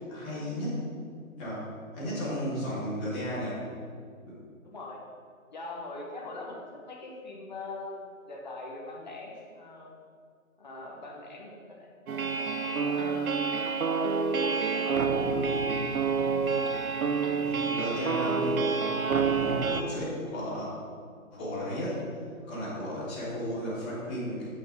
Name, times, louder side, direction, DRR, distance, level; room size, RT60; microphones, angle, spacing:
voice 1, 0.1-0.8 1.4-3.6 4.3-4.4 17.3-18.6 19.3-20.7 21.3-22.0 22.5-24.5, equal, 5° left, -12 dB, 1.4 m, -34 dB
voice 2, 4.6-5.0 5.5-10.0 10.6-11.9 12.2-13.5 13.8-15.4, left 2 dB, 30° left, -2 dB, 1.4 m, -42 dB
sound 1, 12.1-19.8, right 5 dB, 75° right, 0.8 m, -28 dB
8.1 x 8.1 x 3.9 m, 2.1 s
hypercardioid pair, 175°, 42 cm